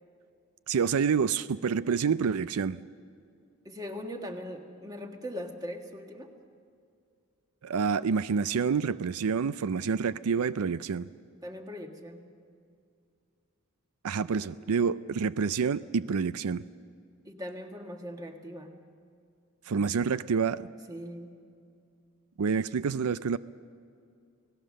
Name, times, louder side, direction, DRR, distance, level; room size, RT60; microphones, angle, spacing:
voice 1, 0.7-2.8 7.6-11.1 14.0-16.6 19.7-20.7 22.4-23.4, right 6 dB, 85° right, 15 dB, 0.5 m, -28 dB
voice 2, 3.6-6.3 11.4-12.2 17.2-18.7 20.9-21.3, equal, 15° right, 4 dB, 1.6 m, -40 dB
29.5 x 18.0 x 6.5 m, 2.3 s
head